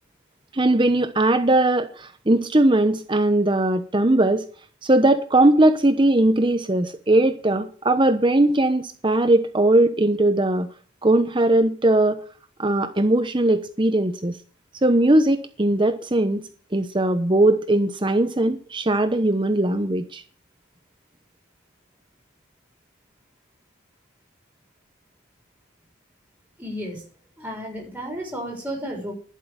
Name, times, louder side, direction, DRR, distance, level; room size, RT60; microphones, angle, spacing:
voice 1, 0.5-4.4 4.8-10.7 11.0-12.2 12.6-14.4 14.8-16.4 16.7-20.2, right 1 dB, 25° right, 1.0 m, -19 dB
voice 2, 26.6-27.0 27.4-29.1, equal, 10° right, 6.7 m, -32 dB
11.5 x 8.5 x 8.8 m
head